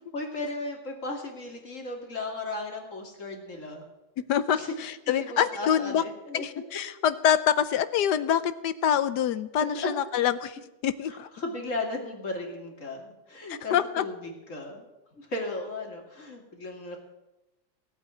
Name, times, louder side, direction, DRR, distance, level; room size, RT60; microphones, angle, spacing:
voice 1, 0.1-3.8 4.5-4.7 5.2-6.4 9.6-9.9 11.1-14.9 15.2-17.0, left 2 dB, 40° left, 1 dB, 2.9 m, -36 dB
voice 2, 4.3-6.0 6.3-10.6 10.8-11.3 13.7-14.0, left 9 dB, 65° left, 14 dB, 1.1 m, -25 dB
18.0 x 8.1 x 8.9 m, 0.97 s
omnidirectional pair, 2.2 m